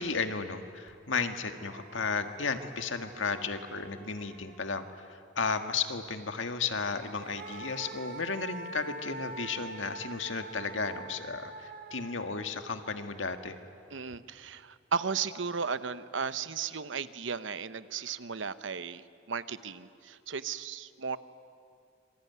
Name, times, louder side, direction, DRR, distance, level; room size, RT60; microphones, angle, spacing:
voice 1, 0.0-13.6, left 4 dB, 90° left, 7 dB, 1.8 m, -34 dB
sound 1, 0.9-1.0 1.3-5.0 6.6-13.9, right 3 dB, 50° right, 4.0 m, -46 dB
voice 2, 13.9-21.2, right 6 dB, 80° right, 13 dB, 1.0 m, -35 dB
26.5 x 23.5 x 9.6 m, 2.4 s
head